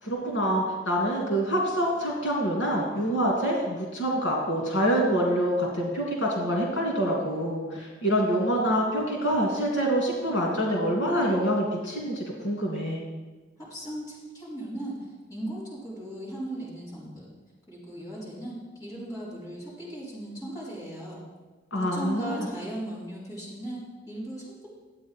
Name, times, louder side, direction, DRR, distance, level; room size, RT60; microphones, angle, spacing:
voice 1, 0.0-13.0 21.7-22.5, equal, 80° left, -2 dB, 2.6 m, -26 dB
voice 2, 13.6-17.3 17.7-21.2 21.7-24.7, right 1 dB, 20° left, -9 dB, 3.9 m, -37 dB
12.0 x 8.6 x 4.5 m, 1.3 s
head